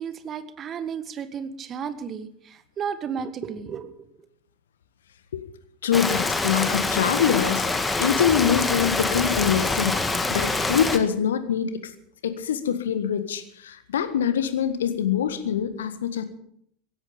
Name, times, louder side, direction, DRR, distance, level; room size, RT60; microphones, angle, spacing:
voice 1, 0.0-4.3, right 7 dB, 30° right, 12 dB, 1.4 m, -33 dB
voice 2, 5.8-7.7 8.0-11.9 12.2-16.2, left 8 dB, 65° left, 11 dB, 1.6 m, -24 dB
Rain, 5.9-11.0, left 3 dB, 10° left, 1.9 m, -25 dB
17.0 x 15.5 x 5.2 m, 0.68 s
figure-of-eight pair, 80°, 0 cm